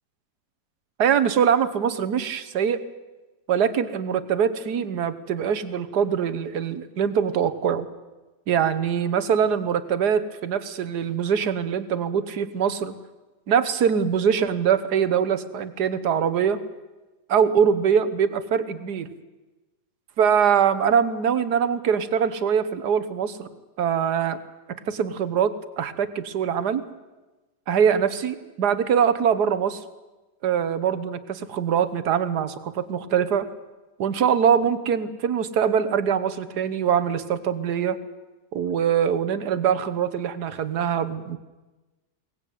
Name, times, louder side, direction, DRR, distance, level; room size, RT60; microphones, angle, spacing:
voice 1, 1.0-2.8 3.5-7.9 8.5-12.9 13.5-16.6 17.3-19.1 20.2-23.5 23.8-24.4 24.9-26.8 27.7-29.8 30.4-33.5 34.0-38.0 38.5-41.4, right 7 dB, 65° right, 13 dB, 1.7 m, -23 dB
23.0 x 18.5 x 9.3 m, 1.2 s
omnidirectional pair, 1.9 m